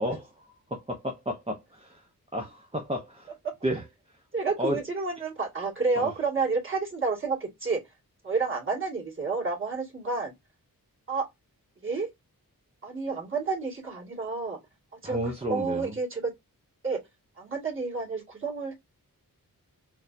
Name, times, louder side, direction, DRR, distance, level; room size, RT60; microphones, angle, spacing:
voice 1, 0.0-2.0 2.3-3.3 3.6-3.8 4.6-4.8 6.0-6.1 15.0-15.9, equal, 15° right, 0.7 m, -32 dB
voice 2, 4.3-7.8 8.2-10.3 11.1-11.3 11.8-12.1 12.8-14.6 14.9-16.3 16.8-17.0 17.4-18.7, right 4 dB, 35° right, 2.1 m, -30 dB
3.9 x 2.7 x 2.5 m
wide cardioid pair, 115°, 35 cm